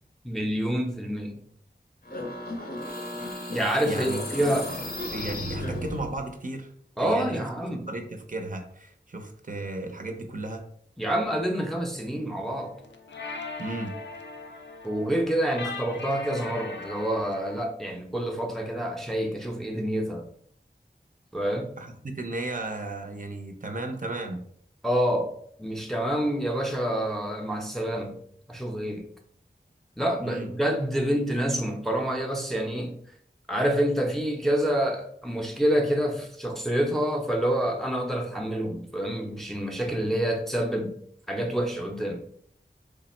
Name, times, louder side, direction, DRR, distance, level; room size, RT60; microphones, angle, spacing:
voice 1, 0.2-1.4 3.5-4.7 7.0-7.9 11.0-12.7 14.8-20.3 21.3-21.7 24.8-25.3 25.6-28.2 28.5-29.1 30.0-33.0 33.5-41.0 41.3-42.2, right 1 dB, ahead, 1 dB, 0.6 m, -27 dB
sound 1, 2.0-6.3, left 1 dB, 55° left, 0.7 m, -34 dB
voice 2, 3.8-4.2 4.5-4.6 5.1-6.7 7.0-10.7 13.6-13.9 21.8-24.4 30.2-30.5, right 2 dB, 45° right, 4 dB, 0.5 m, -35 dB
sound 2, 12.6-17.6, left 3 dB, 85° left, 0.4 m, -40 dB
3.3 x 2.0 x 4.2 m, 0.65 s
wide cardioid pair, 45°, 18 cm